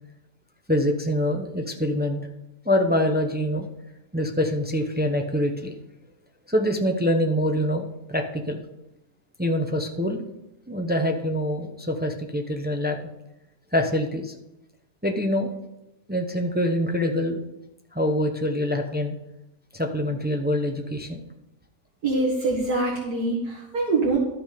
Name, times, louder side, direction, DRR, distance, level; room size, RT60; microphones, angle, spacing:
voice 1, 0.7-2.2 2.6-3.7 4.1-5.7 6.5-8.6 9.4-10.2 10.7-13.0 13.7-14.4 15.0-15.5 16.1-17.4 17.9-19.1 19.7-21.2, equal, 15° right, 4 dB, 0.3 m, -25 dB
voice 2, 22.0-24.2, right 3 dB, 70° right, -5 dB, 2.2 m, -24 dB
12.0 x 6.0 x 5.1 m, 0.92 s
omnidirectional pair, 1.7 m